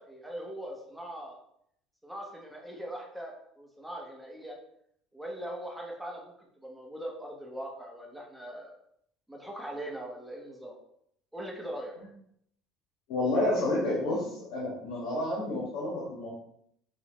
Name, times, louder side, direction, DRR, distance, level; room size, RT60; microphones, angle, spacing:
voice 1, 0.0-1.4 2.0-4.6 5.1-8.8 9.3-10.8 11.3-11.9, right 1 dB, ahead, -1 dB, 0.9 m, -41 dB
voice 2, 13.1-16.3, left 1 dB, 75° left, -6 dB, 1.5 m, -30 dB
6.1 x 2.6 x 3.0 m, 0.71 s
cardioid pair, 115°, 0 cm